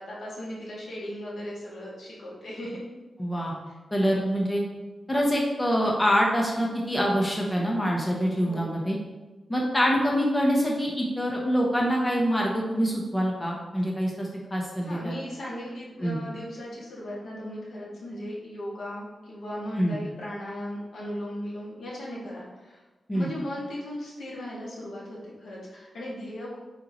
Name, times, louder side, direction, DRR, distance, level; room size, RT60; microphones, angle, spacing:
voice 1, 0.0-2.8 3.7-3.8 8.4-8.8 14.8-22.8 23.1-26.6, equal, 85° left, -6 dB, 2.2 m, -37 dB
voice 2, 3.2-3.5 3.9-4.6 5.1-9.0 9.5-15.2 16.0-16.2 19.8-20.0 23.1-23.3, equal, 15° left, -2 dB, 1.0 m, -25 dB
9.1 x 4.5 x 3.1 m, 1.2 s
wide cardioid pair, 165°, 0 cm